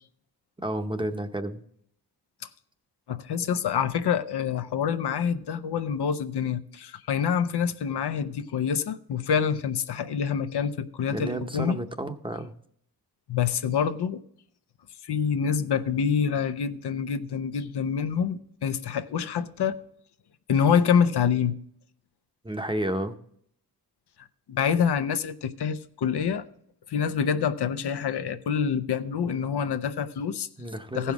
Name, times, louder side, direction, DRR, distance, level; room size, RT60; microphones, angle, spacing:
voice 1, 0.6-1.6 11.1-12.5 22.4-23.2 30.6-31.1, right 1 dB, 15° right, 0.7 m, -31 dB
voice 2, 3.1-11.8 13.3-14.2 15.0-19.8 20.5-21.5 24.5-26.4 26.9-30.5 30.9-31.1, left 7 dB, 90° left, 0.7 m, -26 dB
15.5 x 5.7 x 4.7 m
wide cardioid pair, 150°, 39 cm